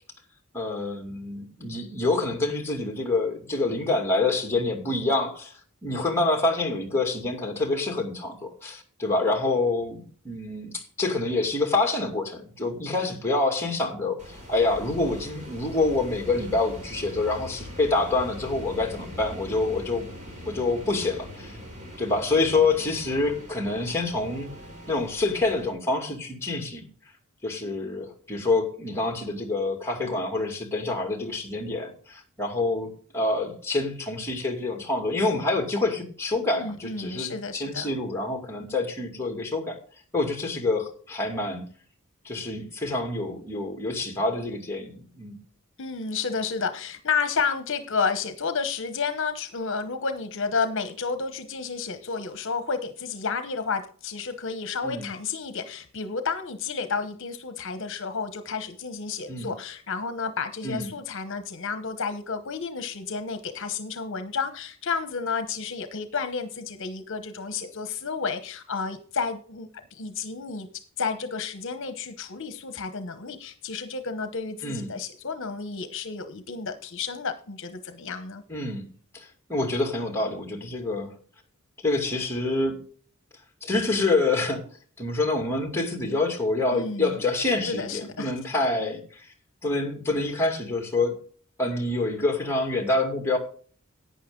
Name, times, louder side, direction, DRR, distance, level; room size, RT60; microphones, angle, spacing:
voice 1, 0.5-5.5 5.8-20.1 20.5-21.6 22.0-24.5 24.9-26.8 27.4-39.8 40.1-41.6 42.2-45.4 54.8-55.1 59.3-59.5 60.6-60.9 74.6-74.9 78.5-78.9 79.1-81.1 81.8-82.8 83.6-84.6 85.0-89.3 89.6-91.2 91.6-93.4, left 2 dB, 10° left, 2.5 m, -27 dB
sound 1, 14.2-25.7, equal, 35° right, 3.6 m, -42 dB
voice 2, 36.5-37.9 45.8-70.7 71.0-78.4 86.7-87.1 87.7-88.3 88.8-88.9, left 5 dB, 60° left, 1.0 m, -31 dB
11.0 x 9.2 x 3.8 m
head